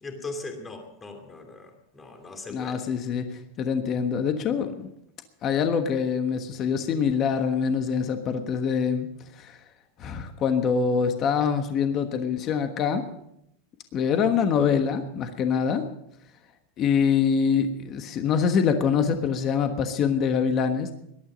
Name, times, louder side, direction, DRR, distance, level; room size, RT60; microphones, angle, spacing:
voice 1, 0.0-2.8, left 3 dB, 15° left, 4 dB, 2.7 m, -39 dB
voice 2, 2.5-3.2 3.6-4.9 5.4-9.1 9.4-9.6 10.0-13.0 13.9-15.8 16.8-20.9, left 6 dB, 30° left, 7 dB, 1.3 m, -24 dB
19.5 x 12.5 x 5.2 m, 0.78 s
supercardioid pair, 165°, 0 cm